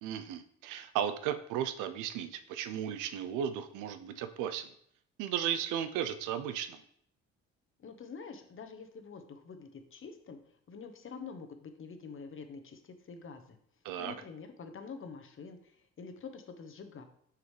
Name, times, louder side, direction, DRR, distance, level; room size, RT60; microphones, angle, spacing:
voice 1, 0.0-4.7 5.2-6.8 13.8-14.1, right 9 dB, 85° right, 11 dB, 0.6 m, -35 dB
voice 2, 7.8-10.4 10.7-13.6 14.0-17.1, left 5 dB, 45° left, 6 dB, 1.0 m, -46 dB
6.3 x 4.9 x 3.3 m, 0.67 s
supercardioid pair, 75°, 30 cm